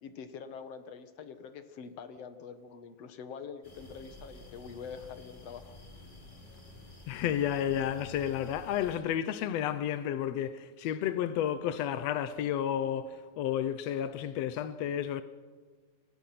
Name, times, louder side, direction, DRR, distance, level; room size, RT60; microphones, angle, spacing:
voice 1, 0.0-5.8, left 6 dB, 55° left, 2.1 m, -45 dB
sound 1, 3.6-9.0, left 1 dB, 15° left, 3.6 m, -51 dB
voice 2, 7.1-15.2, left 10 dB, 80° left, 1.4 m, -31 dB
29.0 x 24.0 x 5.9 m
omnidirectional pair, 4.1 m